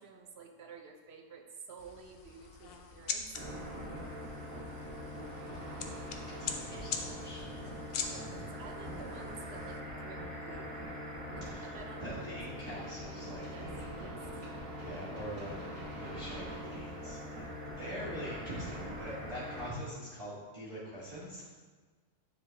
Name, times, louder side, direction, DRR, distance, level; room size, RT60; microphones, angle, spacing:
voice 1, 0.0-3.4 8.0-10.7 11.3-13.0 13.5-14.4, right 5 dB, 60° right, 4 dB, 0.7 m, -51 dB
sound 1, 1.8-9.8, left 6 dB, 60° left, 0.7 m, -43 dB
sound 2, 3.3-19.7, equal, 80° right, 1.7 m, -43 dB
voice 2, 5.5-6.0 6.3-8.5 11.5-11.8 12.0-13.7 14.8-21.5, equal, 30° right, -11 dB, 1.8 m, -44 dB
sound 3, 12.8-17.1, equal, 10° right, 1.9 m, -58 dB
9.7 x 4.6 x 2.8 m, 1.4 s
omnidirectional pair, 1.4 m